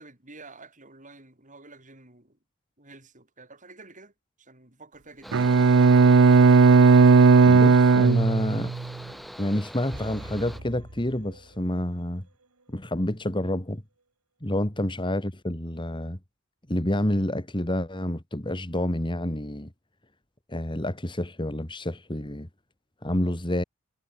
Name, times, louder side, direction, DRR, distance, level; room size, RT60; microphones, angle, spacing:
voice 1, 0.0-2.4 2.8-4.1 4.4-5.7 14.8-14.9, right 3 dB, 35° right, 7.4 m, -50 dB
Mechanical fan, 5.2-10.6, equal, ahead, 5.6 m, -43 dB
Bowed string instrument, 5.3-8.9, right 4 dB, 60° right, 0.5 m, -16 dB
voice 2, 7.4-8.7 9.4-12.3 12.7-13.8 14.4-16.2 16.7-19.7 20.5-22.5 23.0-23.6, left 1 dB, 20° left, 2.1 m, -28 dB
sound 1, 9.9-12.1 12.4-12.5, right 1 dB, 80° right, 2.6 m, -43 dB
head